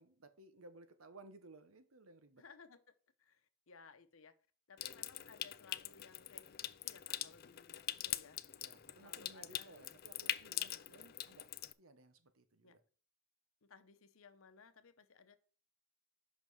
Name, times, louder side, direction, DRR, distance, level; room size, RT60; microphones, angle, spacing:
voice 1, 0.0-2.4 8.6-12.8, right 2 dB, 85° right, 1.1 m, -59 dB
voice 2, 2.4-2.8 3.2-4.3 4.7-8.4 9.0-9.8 10.6-10.9 12.6-12.8 13.6-15.4, left 5 dB, 80° left, 0.8 m, -61 dB
Water tap faucet / Sink (filling or washing) / Trickle dribble, 4.8-11.7, left 13 dB, 45° left, 0.4 m, -43 dB
5.9 x 5.5 x 6.2 m
head